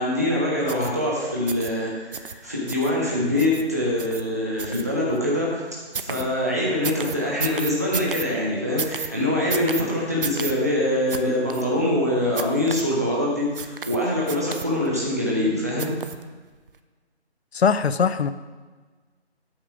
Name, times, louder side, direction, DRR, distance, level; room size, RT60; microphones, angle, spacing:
voice 1, 0.0-5.6 6.0-15.9, left 1 dB, 15° right, -5 dB, 0.6 m, -24 dB
sound 1, 0.7-0.9 1.5-1.7 2.1-2.3 2.7-2.9 3.4-3.6 4.0-4.2 4.6-5.2 5.9-6.2 6.8-8.3 8.8-9.1 9.5-9.8 10.2-10.5 11.1-11.2 11.5-11.6 12.4-12.8 13.6-14.0 14.3-14.9 15.8-16.2 16.7-16.8, right 5 dB, 55° right, 0.5 m, -31 dB
voice 2, 17.5-18.3, left 6 dB, 70° left, 14 dB, 0.5 m, -21 dB
8.6 x 3.6 x 5.9 m, 1.4 s
figure-of-eight pair, 160°, 33 cm